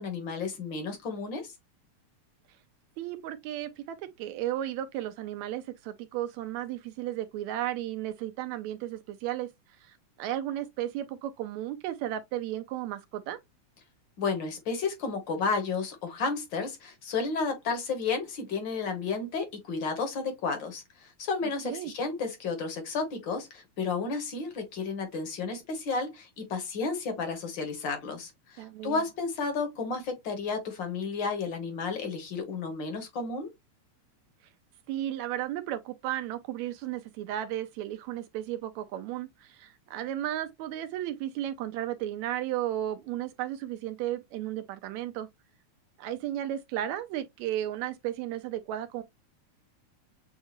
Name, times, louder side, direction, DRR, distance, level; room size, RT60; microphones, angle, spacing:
voice 1, 0.0-1.5 14.2-33.5, left 4 dB, 55° left, 1.3 m, -32 dB
voice 2, 3.0-9.5 9.8-13.4 21.6-21.9 28.6-29.0 34.9-45.3 46.0-49.0, right 12 dB, 80° right, 1.8 m, -34 dB
7.1 x 2.4 x 2.8 m
omnidirectional pair, 3.4 m